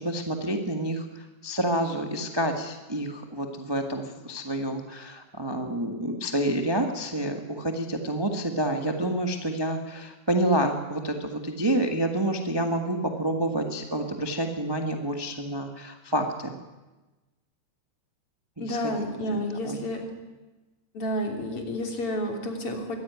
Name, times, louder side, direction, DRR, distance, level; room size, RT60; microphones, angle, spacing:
voice 1, 0.0-16.5 18.6-18.8 19.6-19.8, right 1 dB, 15° right, 4 dB, 0.8 m, -28 dB
voice 2, 18.6-20.1 20.9-23.0, equal, 45° left, 3 dB, 4.0 m, -30 dB
23.0 x 15.5 x 9.5 m, 1.1 s
omnidirectional pair, 3.5 m